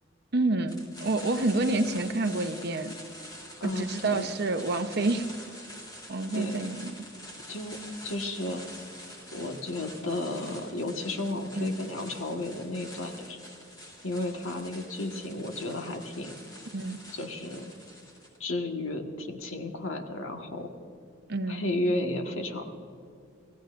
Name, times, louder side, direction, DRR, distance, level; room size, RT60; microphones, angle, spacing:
voice 1, 0.3-2.9 3.6-5.3 6.1-6.9 11.6-11.7 16.7-17.0 21.3-21.6, right 2 dB, 55° right, 8 dB, 0.8 m, -28 dB
sound 1, 0.7-18.4, equal, 20° left, 3.1 m, -46 dB
voice 2, 3.6-4.3 6.3-6.6 7.5-8.6 9.3-13.4 14.0-16.4 17.1-17.7 18.4-20.7 21.5-22.6, left 2 dB, 90° left, 3 dB, 1.6 m, -33 dB
26.0 x 16.0 x 2.6 m, 2.4 s
head